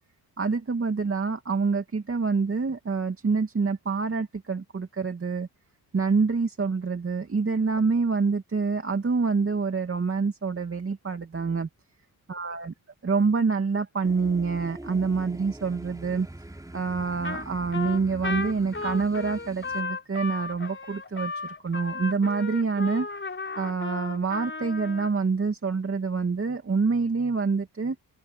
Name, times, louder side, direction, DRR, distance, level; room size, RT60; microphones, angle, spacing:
voice 1, 0.4-5.5 5.9-11.7 12.3-12.7 13.0-16.3 16.7-23.1 23.6-28.0, right 4 dB, 35° right, 2.6 m, -26 dB
sound 1, 14.0-19.8, right 1 dB, 10° right, 3.5 m, -43 dB
Trumpet, 17.2-17.5 17.7-25.1, left 4 dB, 30° left, 4.8 m, -34 dB
open air
cardioid pair, 90°, 37 cm